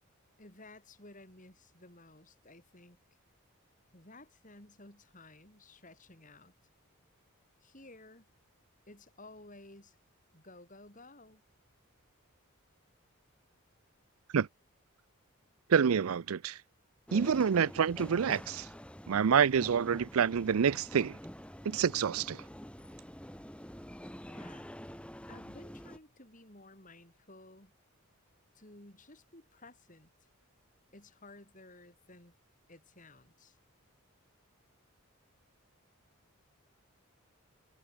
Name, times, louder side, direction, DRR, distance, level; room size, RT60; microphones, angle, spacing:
voice 1, 0.4-3.0 3.9-6.5 7.6-8.2 8.9-10.0 10.3-11.4 24.2-24.7 25.0-27.7 28.5-30.1 30.9-32.3 32.7-33.6, left 2 dB, 35° left, 6.6 m, -55 dB
voice 2, 15.7-16.6 17.1-18.7 19.1-21.2 21.7-22.4, right 7 dB, 75° right, 0.5 m, -27 dB
sound 1, 17.1-26.0, equal, 5° left, 2.9 m, -47 dB
head